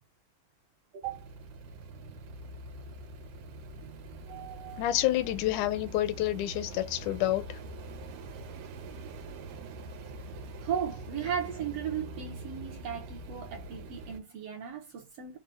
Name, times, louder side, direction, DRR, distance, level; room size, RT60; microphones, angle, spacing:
voice 1, 0.9-1.3 3.4-3.5 4.3-4.8 10.6-15.4, right 8 dB, 65° right, 1.7 m, -36 dB
sound 1, 1.0-14.2, right 1 dB, 85° right, 2.7 m, -44 dB
voice 2, 4.8-7.6, left 14 dB, 80° left, 1.9 m, -28 dB
5.3 x 2.4 x 3.2 m
omnidirectional pair, 3.6 m